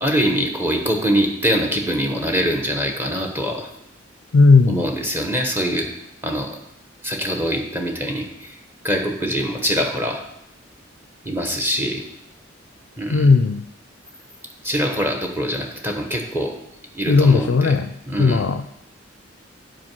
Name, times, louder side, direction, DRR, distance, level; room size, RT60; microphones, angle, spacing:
voice 1, 0.0-3.7 4.7-5.9 6.2-6.5 7.0-8.5 8.8-10.2 11.2-12.0 13.0-13.3 14.6-16.5 16.9-17.8 18.1-18.4, equal, 10° right, 2 dB, 1.1 m, -23 dB
voice 2, 4.3-4.9 13.1-13.7 17.1-18.7, left 4 dB, 65° left, 11 dB, 0.4 m, -16 dB
8.6 x 4.9 x 6.1 m, 0.81 s
head